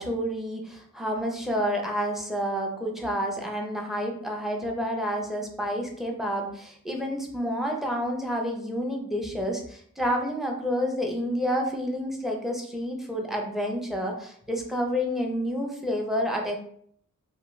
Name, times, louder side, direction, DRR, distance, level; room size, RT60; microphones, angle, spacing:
voice 1, 0.0-16.6, equal, ahead, 0 dB, 0.5 m, -29 dB
2.4 x 2.2 x 3.0 m, 0.62 s
wide cardioid pair, 55°, 33 cm